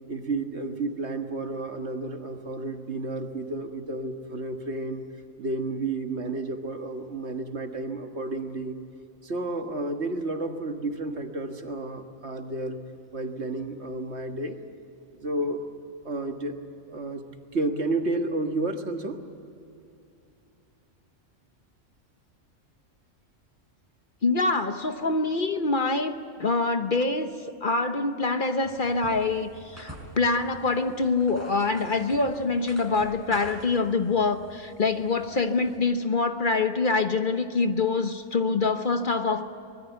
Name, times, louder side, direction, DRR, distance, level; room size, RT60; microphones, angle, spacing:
voice 1, 0.1-5.0 5.4-8.8 9.2-12.8 13.1-14.6 15.2-15.6 16.1-16.6 16.9-17.2 17.5-19.2, right 2 dB, 60° right, 5 dB, 1.9 m, -31 dB
voice 2, 24.2-27.3 27.6-39.5, left 3 dB, 45° left, 8 dB, 1.1 m, -25 dB
sound 1, 28.6-35.8, right 1 dB, 10° right, 5.4 m, -47 dB
24.5 x 20.5 x 8.2 m, 2.7 s
omnidirectional pair, 1.3 m